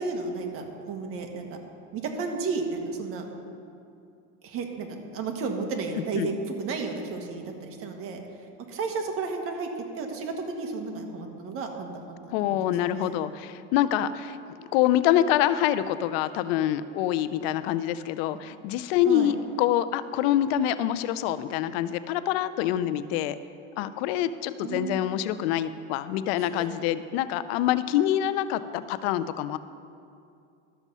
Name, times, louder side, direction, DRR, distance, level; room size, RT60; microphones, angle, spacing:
voice 1, 0.0-1.6 1.9-3.2 4.4-8.2 8.7-9.7 10.0-12.2 12.5-13.1 19.1-19.3 24.6-25.1 26.4-26.7, right 4 dB, 50° right, 3 dB, 1.5 m, -33 dB
voice 2, 12.3-14.4 14.7-23.4 23.8-29.6, left 12 dB, 90° left, 14 dB, 0.6 m, -26 dB
12.5 x 7.2 x 5.5 m, 2.5 s
cardioid pair, 140°, 29 cm